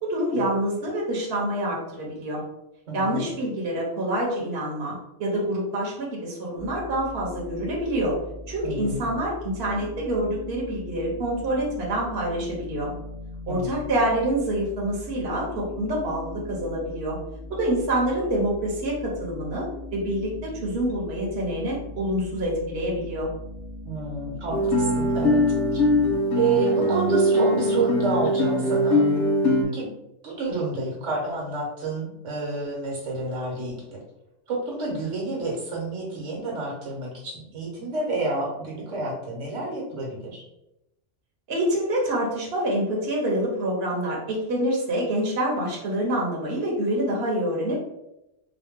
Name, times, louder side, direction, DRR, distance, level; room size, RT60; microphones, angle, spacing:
voice 1, 0.0-2.4 2.9-8.1 8.5-12.9 13.5-17.2 17.5-19.7 19.9-23.3 41.5-47.8, right 1 dB, 60° right, -3 dB, 1.1 m, -26 dB
voice 2, 2.9-3.3 8.6-9.0 13.5-13.7 23.8-25.4 25.7-25.8 26.3-29.0 29.7-29.9 30.2-34.0 34.5-40.4, right 3 dB, 80° right, -2 dB, 1.4 m, -29 dB
sound 1, 6.5-26.2, left 2 dB, 25° left, 1.1 m, -39 dB
Guitar, 24.5-29.6, left 1 dB, 75° left, 1.1 m, -21 dB
3.9 x 2.2 x 3.5 m, 0.89 s
omnidirectional pair, 1.2 m